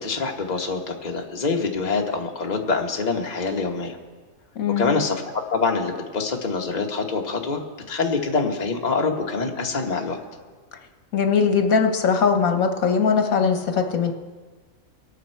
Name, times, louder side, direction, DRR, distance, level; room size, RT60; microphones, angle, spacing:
voice 1, 0.0-4.0 4.8-5.2 5.5-7.6 7.9-10.2, left 4 dB, 30° left, 1 dB, 1.3 m, -25 dB
voice 2, 4.5-4.9 11.1-14.1, left 6 dB, 75° left, 5 dB, 1.5 m, -20 dB
23.0 x 9.1 x 4.5 m, 1.4 s
omnidirectional pair, 1.5 m